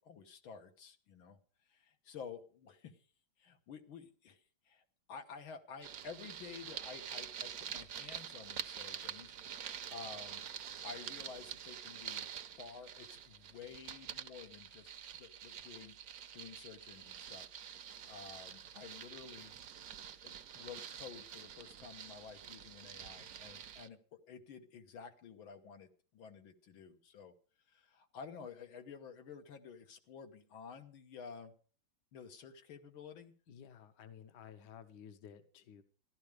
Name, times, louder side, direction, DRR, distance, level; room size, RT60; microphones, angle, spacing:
voice 1, 0.0-1.4 1.7-3.0 3.4-10.4 10.8-12.3 12.6-17.5 17.7-19.6 20.2-27.3 27.7-31.5 32.1-33.3, left 6 dB, 80° left, 6 dB, 2.0 m, -52 dB
sound 1, 5.8-23.9, right 9 dB, 60° right, 1.1 m, -47 dB
voice 2, 33.5-35.8, left 8 dB, 65° left, 10 dB, 1.5 m, -54 dB
14.5 x 12.0 x 5.0 m, 0.41 s
omnidirectional pair, 2.2 m